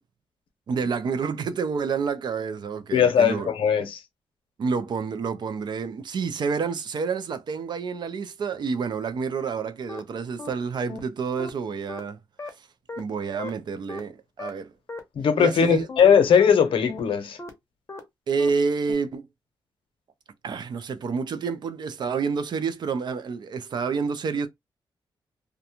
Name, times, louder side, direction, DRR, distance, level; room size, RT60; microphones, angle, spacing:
voice 1, 0.7-3.5 4.6-12.2 13.0-14.7 15.4-15.8 18.3-19.2 20.4-24.5, right 5 dB, 55° right, 0.4 m, -28 dB
voice 2, 2.9-4.0 15.2-17.4, left 7 dB, 80° left, 0.7 m, -19 dB
sound 1, 9.9-10.0 10.4-10.5 10.9-11.0 11.4-11.5 11.9-12.0 12.4-12.5 12.9-13.0 13.4-13.5 13.9-14.0 14.4-14.5 14.9-15.0 15.4-15.5 15.9-16.0 16.4-16.5 16.9-17.0 17.4-17.5 17.9-18.0 18.4-18.5 18.9-19.0, left 3 dB, 30° left, 0.7 m, -36 dB
2.5 x 2.1 x 2.8 m
wide cardioid pair, 130°, 9 cm